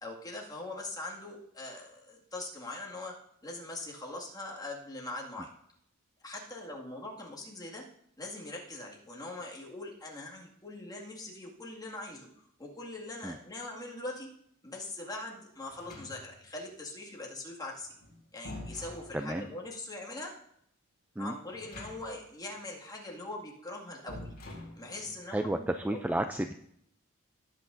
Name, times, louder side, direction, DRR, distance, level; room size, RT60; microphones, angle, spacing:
voice 1, 0.0-5.5 6.2-7.9 8.2-14.3 14.6-17.9 18.3-20.3 21.2-24.3 24.8-26.2, left 2 dB, 15° left, -2 dB, 2.1 m, -42 dB
sound 1, 15.7-16.5 17.8-19.6 21.5-22.3 22.5-22.6 24.1-25.2, left 1 dB, 50° left, 3.8 m, -46 dB
voice 2, 19.1-19.5 21.2-21.3 25.3-26.5, right 1 dB, 5° right, 7 dB, 0.3 m, -32 dB
18.0 x 8.1 x 2.6 m, 0.72 s
head